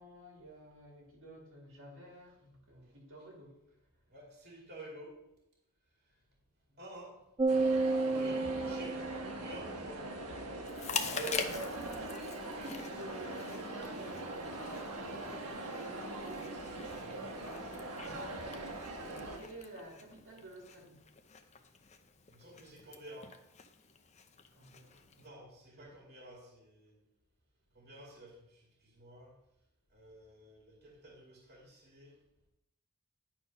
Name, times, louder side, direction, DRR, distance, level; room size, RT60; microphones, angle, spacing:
voice 1, 0.0-3.6 6.7-6.8 8.0-8.6 11.0-12.3 12.5-17.0 18.0-21.0 24.5-25.4 25.7-25.9, right 1 dB, 65° right, -1 dB, 2.5 m, -51 dB
voice 2, 4.1-5.2 6.8-7.2 8.0-10.1 11.1-11.5 17.0-17.3 22.3-23.4 25.2-27.0 27.7-29.3 29.9-32.2, right 1 dB, 50° right, -2 dB, 2.4 m, -49 dB
sound 1, 7.4-9.9, right 3 dB, 20° right, 0.4 m, -32 dB
sound 2, 7.5-19.4, right 2 dB, 90° right, 1.3 m, -42 dB
Chewing mastication, 10.6-25.3, left 6 dB, 30° left, 0.7 m, -45 dB
10.5 x 4.5 x 5.3 m, 0.85 s
head